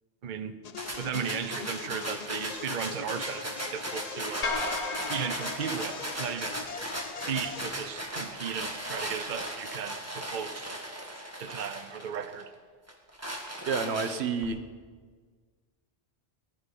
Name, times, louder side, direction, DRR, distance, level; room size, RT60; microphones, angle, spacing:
voice 1, 0.2-0.6 1.0-4.6 5.1-6.6 7.3-10.9 11.4-12.5, right 8 dB, 50° right, 10 dB, 0.8 m, -36 dB
sound 1, 0.6-7.7, left 7 dB, 50° left, 0.5 m, -42 dB
sound 2, 0.8-12.4 12.9-14.4, right 1 dB, 15° right, 1.9 m, -37 dB
sound 3, 4.4-6.8, left 3 dB, 85° left, 2.1 m, -35 dB
voice 2, 13.7-14.6, right 5 dB, 70° right, 10 dB, 1.1 m, -29 dB
19.0 x 12.0 x 5.3 m, 1.5 s
omnidirectional pair, 1.1 m